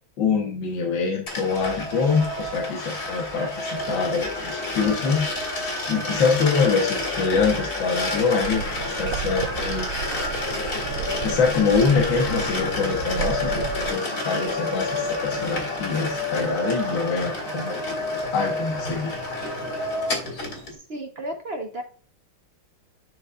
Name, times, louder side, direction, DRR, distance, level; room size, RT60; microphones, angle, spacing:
voice 1, 0.2-5.4 5.9-9.9 11.2-17.8 18.3-19.1, left 5 dB, 75° left, -1 dB, 1.9 m, -24 dB
sound 1, 1.3-20.7, left 2 dB, 55° left, 2.8 m, -29 dB
sound 2, 8.4-13.9, right 10 dB, 80° right, 1.3 m, -33 dB
voice 2, 20.7-21.8, right 1 dB, 40° right, 4 dB, 1.0 m, -33 dB
11.5 x 4.6 x 2.5 m, 0.42 s
omnidirectional pair, 2.1 m